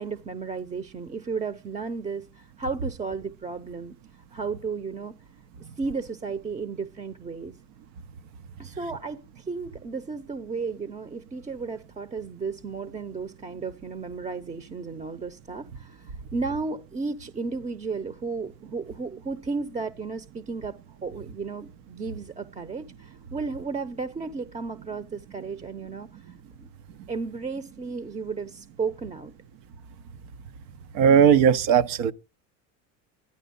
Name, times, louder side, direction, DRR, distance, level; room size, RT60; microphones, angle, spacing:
voice 1, 0.0-3.9 4.3-5.1 5.6-7.5 8.6-26.7 27.1-29.3, right 4 dB, 20° right, 0.8 m, -34 dB
voice 2, 30.9-32.1, right 8 dB, 70° right, 1.0 m, -18 dB
12.5 x 10.5 x 5.3 m
supercardioid pair, 120°, 34 cm